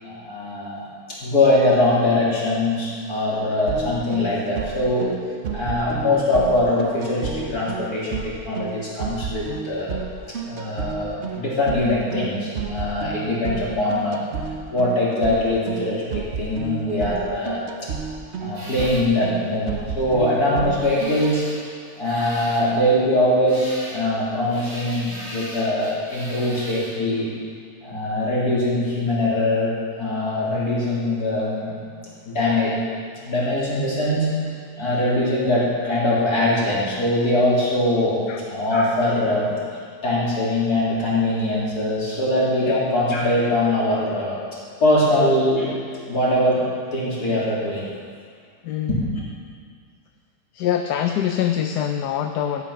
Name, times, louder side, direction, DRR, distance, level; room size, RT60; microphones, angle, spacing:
voice 1, 0.0-0.8 1.2-5.1 5.5-10.0 10.4-14.2 14.7-17.6 18.4-21.4 22.0-27.3 27.8-31.8 32.2-32.7 33.2-34.3 34.8-39.5 40.0-44.4 44.8-45.8 46.1-46.6 46.9-47.9, left 1 dB, 70° left, -7 dB, 3.8 m, -22 dB
sound 1, 3.7-21.3, right 6 dB, 50° right, 1.0 m, -32 dB
sound 2, 18.5-27.3, equal, 90° right, 3.7 m, -40 dB
voice 2, 48.6-49.0 50.5-52.6, left 9 dB, 85° left, 5 dB, 1.2 m, -24 dB
14.0 x 8.9 x 5.7 m, 2.1 s
omnidirectional pair, 1.7 m